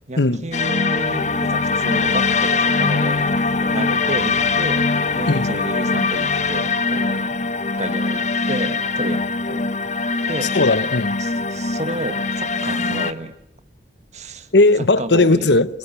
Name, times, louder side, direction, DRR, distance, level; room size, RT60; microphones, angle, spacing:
voice 1, 0.1-3.3 3.6-7.4 7.8-9.7 10.3-10.5 11.2-13.3 14.1-14.5 14.8-15.5, right 2 dB, 40° right, 1.8 m, -31 dB
sound 1, 0.5-13.1, left 4 dB, 45° left, 1.1 m, -22 dB
voice 2, 10.4-11.2 14.5-15.8, left 2 dB, 75° left, 1.1 m, -17 dB
28.0 x 23.5 x 9.0 m
head